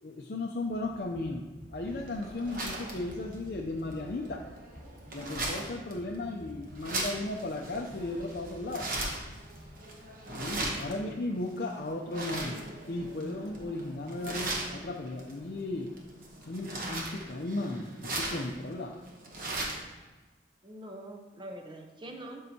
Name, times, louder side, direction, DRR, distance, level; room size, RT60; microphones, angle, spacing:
voice 1, 0.0-4.4 5.1-9.0 10.4-15.9 16.5-18.9, left 2 dB, 55° left, 0 dB, 0.5 m, -35 dB
sound 1, 0.7-10.3, equal, 15° left, 2.3 m, -51 dB
sound 2, 1.8-19.9, right 2 dB, 50° right, 1.2 m, -39 dB
voice 2, 20.6-22.4, right 1 dB, 25° right, 2 dB, 0.8 m, -44 dB
12.0 x 5.4 x 2.8 m, 1.3 s
head